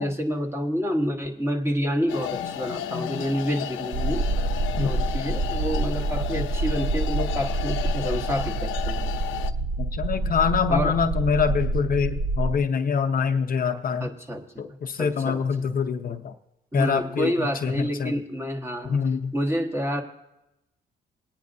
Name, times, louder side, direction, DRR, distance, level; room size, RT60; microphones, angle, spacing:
voice 1, 0.0-4.3 4.8-9.1 10.7-11.0 14.0-14.6 15.0-15.7 16.7-19.0 19.3-20.0, equal, 15° right, 2 dB, 1.4 m, -28 dB
sound 1, 2.1-9.5, left 11 dB, 85° left, 0.6 m, -33 dB
voice 2, 2.4-3.3 4.8-4.9 9.8-14.1 14.6-16.3 16.7-17.3 17.6-18.1 18.9-19.3, left 6 dB, 45° left, 6 dB, 0.7 m, -25 dB
sound 2, 3.9-12.6, right 2 dB, 40° right, 0.6 m, -27 dB
19.0 x 9.3 x 2.6 m, 0.89 s
cardioid pair, 90°, 20 cm